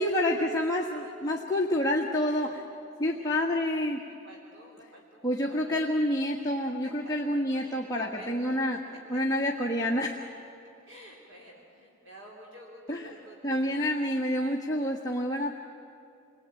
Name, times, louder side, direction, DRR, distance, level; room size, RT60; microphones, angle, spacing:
voice 1, 0.0-2.6 3.0-4.0 5.2-8.8 9.1-10.2 12.9-13.1 13.4-15.5, left 1 dB, 15° left, -3 dB, 1.6 m, -28 dB
voice 2, 2.3-2.7 3.0-3.3 4.0-7.2 7.6-8.6 9.1-9.2 10.9-13.8, equal, 65° right, -1 dB, 3.6 m, -51 dB
29.5 x 21.5 x 9.1 m, 2.8 s
head